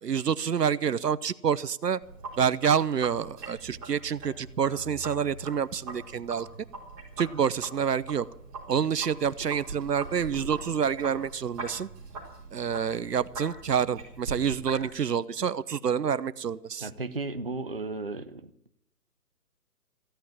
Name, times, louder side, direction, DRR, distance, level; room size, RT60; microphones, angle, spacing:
voice 1, 0.0-2.0 2.4-6.5 7.2-8.3 8.7-11.9 12.5-16.9, right 7 dB, 70° right, 17 dB, 0.9 m, -28 dB
Sink (filling or washing), 2.0-14.9, right 3 dB, 5° right, 1.6 m, -42 dB
voice 2, 16.8-18.5, right 3 dB, 35° right, 9 dB, 0.8 m, -34 dB
16.0 x 11.5 x 7.2 m, 0.75 s
hypercardioid pair, 180°, 49 cm